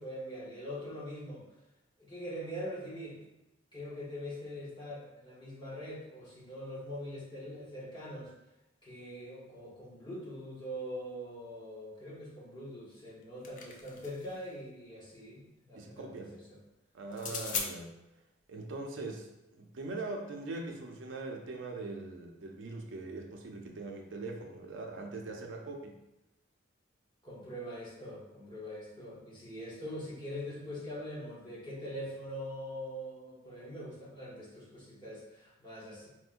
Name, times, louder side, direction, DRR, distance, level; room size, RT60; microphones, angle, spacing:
voice 1, 0.0-1.4 2.0-3.2 3.7-8.3 8.8-16.6 17.2-17.4 27.2-36.1, equal, 25° left, -6 dB, 0.8 m, -43 dB
sound 1, 13.1-14.4 17.1-17.7, left 5 dB, 40° left, 0.3 m, -38 dB
voice 2, 15.7-16.3 16.9-17.9 18.5-26.0, right 3 dB, 70° right, 2 dB, 0.4 m, -41 dB
4.3 x 2.1 x 2.4 m, 0.93 s
head